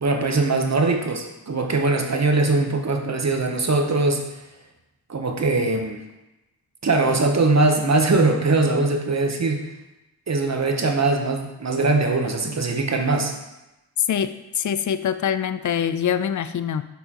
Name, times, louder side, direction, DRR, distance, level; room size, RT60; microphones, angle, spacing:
voice 1, 0.0-4.4 5.1-6.0 6.8-9.6 10.3-13.3, right 3 dB, 40° right, 3 dB, 0.9 m, -21 dB
voice 2, 14.6-16.8, left 8 dB, 45° left, 12 dB, 0.4 m, -24 dB
6.0 x 5.5 x 2.9 m, 0.98 s
cardioid pair, 55°, 41 cm